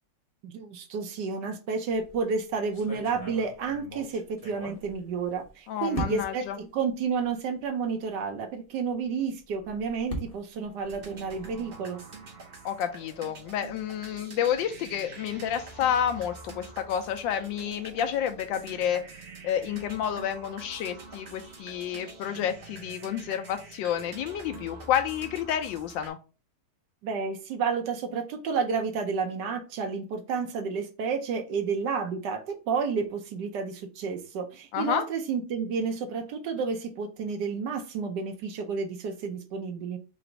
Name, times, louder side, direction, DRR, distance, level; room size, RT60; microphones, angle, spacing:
voice 1, 0.4-12.0 27.0-40.0, right 5 dB, 70° right, 1.2 m, -31 dB
sound 1, 1.9-2.2 2.7-5.5 5.9-6.5 7.2-7.3 7.7-7.8 9.4-11.7, equal, 35° left, 0.6 m, -40 dB
voice 2, 5.7-6.6 12.6-19.0 19.4-26.2 34.7-35.0, left 9 dB, 80° left, 1.3 m, -30 dB
sound 2, 10.8-26.1, right 3 dB, 45° right, 0.8 m, -46 dB
3.9 x 2.5 x 4.4 m
omnidirectional pair, 2.1 m